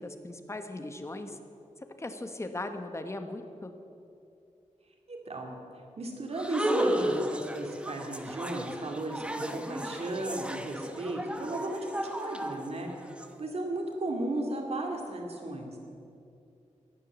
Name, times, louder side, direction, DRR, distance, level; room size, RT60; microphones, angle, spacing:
voice 1, 0.0-1.4 2.0-3.7, left 2 dB, 20° left, 7 dB, 1.1 m, -38 dB
voice 2, 5.1-5.6 6.0-12.9 13.4-15.7, right 1 dB, 55° right, 1 dB, 2.4 m, -35 dB
sound 1, 6.3-13.3, right 1 dB, 10° right, 0.9 m, -34 dB
16.0 x 10.5 x 7.2 m, 2.7 s
wide cardioid pair, 140°, 13 cm